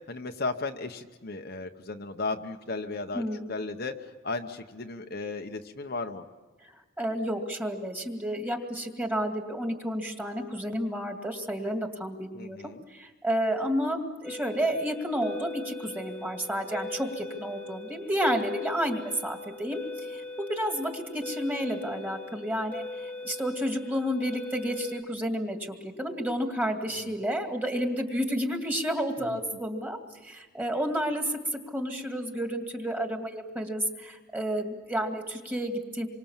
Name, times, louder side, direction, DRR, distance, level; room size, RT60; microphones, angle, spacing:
voice 1, 0.1-3.2 3.5-3.9 4.2-6.2 12.4-12.8 27.1-27.2, left 3 dB, 45° left, 4 dB, 1.0 m, -35 dB
voice 2, 6.6-12.6 12.9-36.1, equal, 10° right, 4 dB, 2.2 m, -31 dB
sound 1, 14.2-25.0, left 2 dB, 5° left, 1.2 m, -40 dB
28.0 x 24.5 x 7.3 m, 1.3 s
head